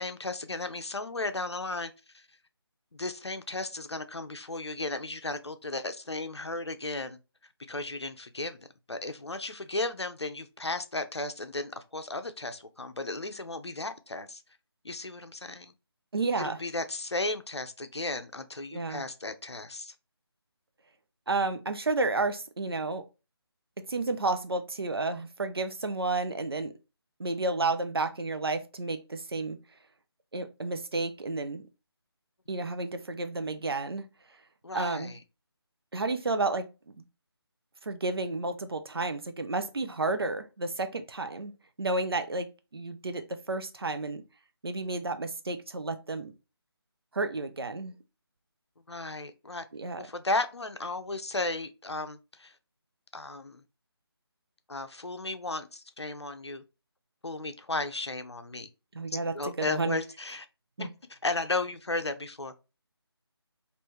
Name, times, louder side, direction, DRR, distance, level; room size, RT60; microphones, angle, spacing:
voice 1, 0.0-2.3 2.9-7.2 7.7-14.4 14.8-15.7 16.4-19.9 34.6-35.2 48.9-49.7 50.0-52.5 53.1-53.6 54.7-56.6 57.2-58.7 59.3-60.5 60.8-62.5, left 2 dB, 85° left, 0.6 m, -35 dB
voice 2, 16.1-16.6 18.7-19.0 21.3-23.0 23.8-26.7 27.2-29.6 30.3-31.6 32.5-34.1 34.7-35.1 35.9-37.0 37.8-41.5 41.8-44.2 44.6-46.3 47.1-47.9 49.8-50.0 58.9-60.0 60.8-60.9, right 3 dB, 65° right, 0.6 m, -31 dB
3.4 x 2.5 x 3.0 m
figure-of-eight pair, 160°, 14 cm